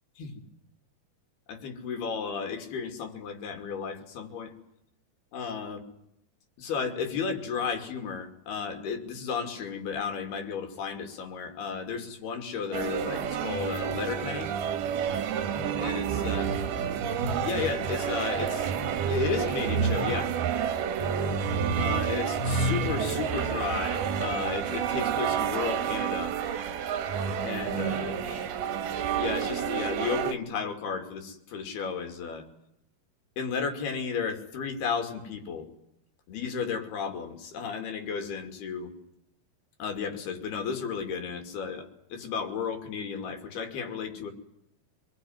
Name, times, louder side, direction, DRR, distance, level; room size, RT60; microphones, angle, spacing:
voice 1, 1.5-4.5 5.3-5.8 6.6-14.5 15.8-16.5 17.4-18.7 19.1-20.3 21.8-26.6 27.4-28.5 29.2-32.5 33.4-35.7 36.3-38.9 39.8-44.3, left 6 dB, 85° left, 5 dB, 4.7 m, -33 dB
sound 1, 12.7-30.4, right 7 dB, 80° right, 3.5 m, -29 dB
25.5 x 20.5 x 9.5 m, 0.78 s
omnidirectional pair, 4.4 m